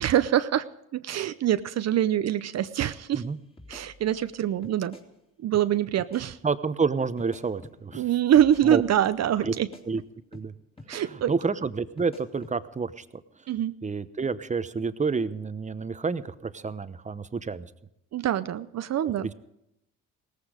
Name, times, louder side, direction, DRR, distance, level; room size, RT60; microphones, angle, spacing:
voice 1, 0.0-0.7 0.9-3.2 3.7-5.0 5.4-6.4 7.9-9.7 10.9-11.3 13.5-13.7 18.1-19.3, right 11 dB, 60° right, 12 dB, 0.7 m, -24 dB
sound 1, 3.1-3.3 3.6-4.3 4.6-5.1 5.5-5.7 6.0-6.3 7.2-8.1 8.4-9.1 9.4-9.9 10.3-10.5 10.8-11.1 12.0-12.6, left 2 dB, 20° left, 3.1 m, -47 dB
voice 2, 6.4-8.0 8.6-8.8 9.4-9.5 9.9-10.0 10.3-10.5 10.9-11.0 11.3-13.0 13.8-17.7 19.2-19.3, right 4 dB, 25° right, 13 dB, 0.9 m, -29 dB
18.0 x 14.5 x 5.0 m, 0.81 s
cardioid pair, 90°, 30 cm